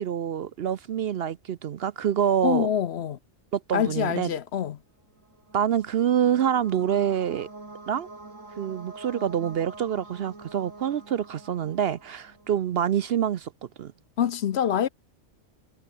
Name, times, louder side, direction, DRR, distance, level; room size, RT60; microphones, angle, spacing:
voice 1, 0.0-2.7 3.5-4.3 5.5-7.5 7.9-8.1 8.6-13.5 13.8-13.9, right 9 dB, 60° right, 0.7 m, -26 dB
voice 2, 2.4-3.2 3.7-4.8 14.2-14.9, left 9 dB, 60° left, 0.9 m, -25 dB
sound 1, 5.1-12.8, right 2 dB, 80° right, 4.9 m, -46 dB
omnidirectional pair, 1.3 m